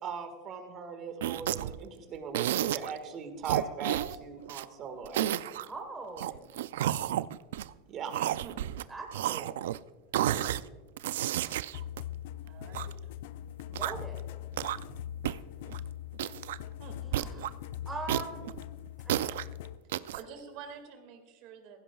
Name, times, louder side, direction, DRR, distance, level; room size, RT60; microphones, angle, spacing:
voice 1, 0.0-5.6 7.9-8.1 19.9-20.1, right 5 dB, 35° right, 7 dB, 1.7 m, -40 dB
sound 1, 1.2-1.8 2.3-3.0 3.4-4.7 5.0-5.7 6.2-7.7 8.1-8.8 9.1-9.8 10.1-10.6 11.0-12.9 13.6-14.1 14.5-15.0 15.2-15.4 15.7-15.8 16.1-16.6 17.1-17.5 18.1-19.5 19.9-20.2, right 12 dB, 90° right, 0.3 m, -31 dB
voice 2, 5.6-6.6 8.9-9.6 13.7-14.2 17.0-17.5 17.8-18.5 19.0-19.3, right 3 dB, 10° right, 2 dB, 1.3 m, -41 dB
voice 3, 8.1-8.6 10.2-10.6 12.4-12.9 16.8-17.0 20.1-21.8, right 6 dB, 50° right, 6 dB, 2.1 m, -47 dB
sound 2, 11.7-19.8, left 12 dB, 70° left, 0.4 m, -42 dB
16.0 x 16.0 x 2.3 m, 1.3 s
supercardioid pair, 155°, 0 cm